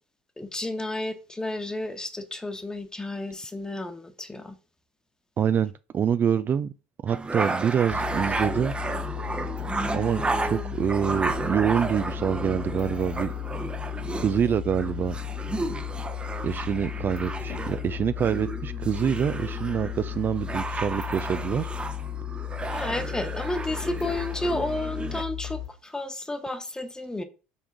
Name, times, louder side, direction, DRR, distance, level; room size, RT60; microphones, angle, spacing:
voice 1, 0.4-4.6 22.7-27.2, left 1 dB, 10° left, 1.1 m, -32 dB
voice 2, 5.4-6.7 7.0-8.7 9.9-13.3 14.2-15.2 16.4-21.7, right 8 dB, 35° right, 0.3 m, -26 dB
sound 1, 7.1-25.2, right 3 dB, 15° right, 0.8 m, -33 dB
sound 2, 7.9-25.7, left 13 dB, 55° left, 1.2 m, -35 dB
6.0 x 3.6 x 4.9 m
hypercardioid pair, 70°, 6 cm